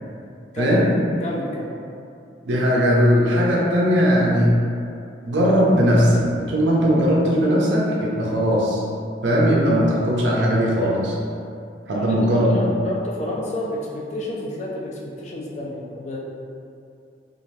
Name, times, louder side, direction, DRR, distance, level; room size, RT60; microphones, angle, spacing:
voice 1, 0.6-0.9 2.5-4.6 5.3-8.8 9.2-11.2 11.9-12.6, equal, 80° right, -4 dB, 0.5 m, -18 dB
voice 2, 1.2-1.7 11.9-16.2, left 1 dB, 40° left, -3 dB, 0.4 m, -30 dB
2.6 x 2.4 x 3.1 m, 2.5 s
head